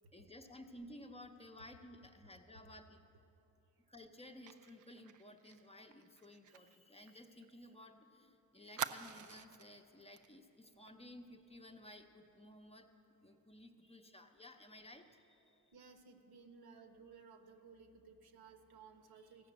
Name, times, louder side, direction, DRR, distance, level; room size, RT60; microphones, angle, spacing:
voice 1, 0.1-3.0 3.9-12.9 13.2-15.7, left 1 dB, 15° left, 5 dB, 0.7 m, -56 dB
Fire, 4.5-7.9 8.2-8.3 8.8-9.7 10.2-10.3 10.6-10.9, right 10 dB, 55° right, 0.5 m, -47 dB
voice 2, 15.7-19.5, right 5 dB, 80° right, 6 dB, 1.1 m, -59 dB
15.0 x 5.8 x 7.9 m, 3.0 s
cardioid pair, 95°, 37 cm